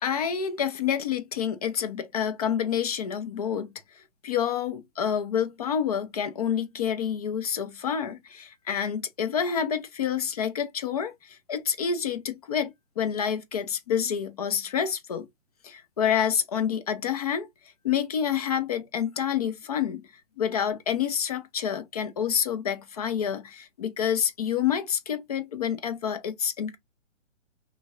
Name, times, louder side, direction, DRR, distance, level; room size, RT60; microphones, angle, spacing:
voice 1, 0.0-15.3 15.6-17.5 17.8-20.1 20.4-26.8, left 8 dB, 30° left, 0.5 m, -28 dB
3.2 x 2.4 x 3.4 m
hypercardioid pair, 140°, 38 cm